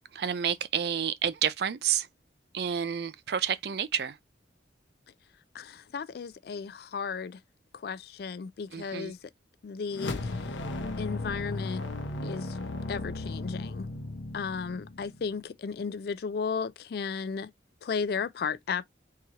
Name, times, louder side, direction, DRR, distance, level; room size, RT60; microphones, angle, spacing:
voice 1, 0.1-2.1 2.5-4.2 8.7-9.1, right 8 dB, 60° right, 0.4 m, -29 dB
voice 2, 5.5-7.4 7.7-9.2 9.6-10.3 11.0-11.8 12.2-12.6 12.9-13.9 14.3-17.5 17.8-18.8, left 5 dB, 55° left, 0.3 m, -34 dB
sound 1, 9.9-15.3, left 2 dB, 80° left, 0.7 m, -35 dB
3.8 x 2.8 x 2.8 m
head